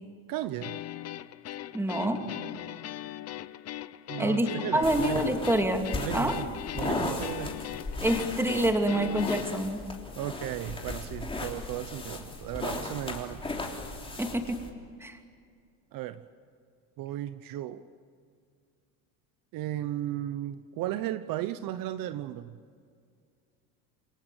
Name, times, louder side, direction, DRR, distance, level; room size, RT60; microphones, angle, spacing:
voice 1, 0.3-0.8 4.1-5.3 5.9-7.5 10.1-13.4 15.9-16.2 17.0-17.8 19.5-22.6, right 13 dB, 55° right, 12 dB, 1.0 m, -35 dB
sound 1, 0.6-9.4, left 13 dB, 40° left, 0.8 m, -39 dB
voice 2, 1.7-2.2 4.2-5.9 6.1-6.4 8.0-9.8 14.2-14.6 15.0-15.2, right 1 dB, 5° right, 4 dB, 2.7 m, -27 dB
sound 2, 4.8-14.7, left 2 dB, 15° left, 3.3 m, -36 dB
28.0 x 22.5 x 9.2 m, 2.2 s
cardioid pair, 135°, 41 cm